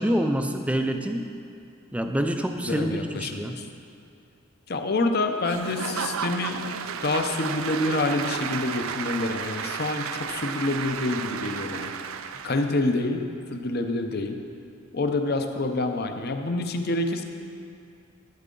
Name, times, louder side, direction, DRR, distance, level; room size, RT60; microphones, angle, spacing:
voice 1, 0.0-1.3 1.9-3.6, equal, 5° right, 6 dB, 0.4 m, -26 dB
voice 2, 2.7-3.6 4.7-11.9 12.4-14.4 14.9-17.2, left 2 dB, 50° left, 6 dB, 0.6 m, -27 dB
Applause / Crowd, 5.4-12.8, right 7 dB, 80° right, 0.4 m, -33 dB
12.0 x 9.2 x 3.8 m, 2.5 s
head